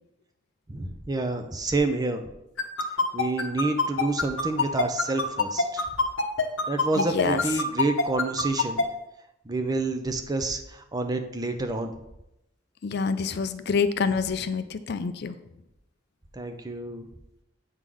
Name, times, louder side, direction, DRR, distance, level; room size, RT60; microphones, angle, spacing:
voice 1, 0.7-2.2 3.1-5.9 6.7-8.8 9.5-11.9 16.3-17.1, right 3 dB, 20° right, 6 dB, 0.6 m, -28 dB
sound 1, 2.6-8.8, left 4 dB, 75° left, 1.0 m, -23 dB
voice 2, 7.0-7.4 12.8-15.4, left 5 dB, 55° left, 12 dB, 0.4 m, -27 dB
8.1 x 3.8 x 6.2 m, 0.87 s
head